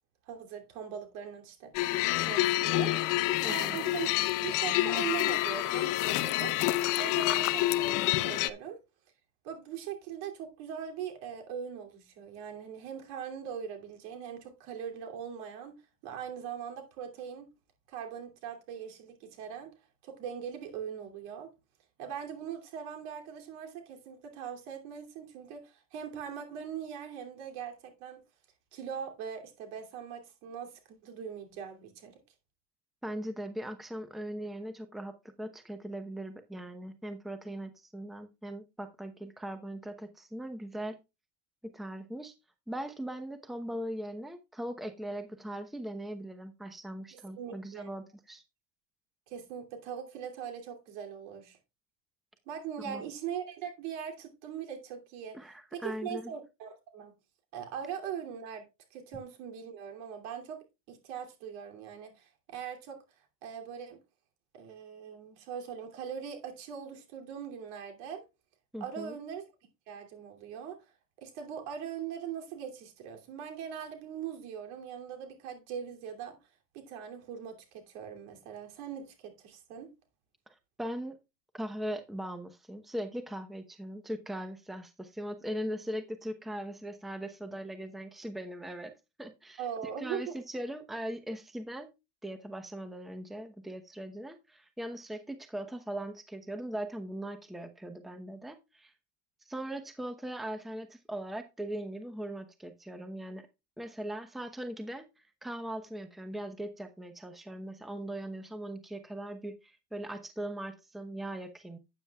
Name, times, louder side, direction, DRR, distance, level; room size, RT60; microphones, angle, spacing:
voice 1, 0.3-1.7 2.1-3.0 3.2-6.6 7.0-8.8 9.4-15.8 16.0-17.5 17.9-19.7 20.0-21.5 22.0-28.2 28.7-32.2 47.1-47.9 49.3-51.6 52.5-55.4 55.7-57.1 57.5-58.7 58.9-63.0 63.4-64.0 64.5-68.2 68.8-69.4 69.9-70.8 71.2-76.4 76.7-79.9 89.6-90.3, right 8 dB, 70° right, 2.9 m, -41 dB
sound 1, 1.7-8.5, left 16 dB, 55° left, 0.8 m, -28 dB
voice 2, 3.4-3.8 33.0-41.0 41.6-42.3 42.7-48.4 52.8-53.0 55.3-56.3 68.7-69.2 80.5-81.2 81.5-88.9 89.2-91.9 92.2-98.9 99.5-103.5 103.8-111.8, right 1 dB, ahead, 0.9 m, -40 dB
12.0 x 9.0 x 2.3 m
supercardioid pair, 105°, 36 cm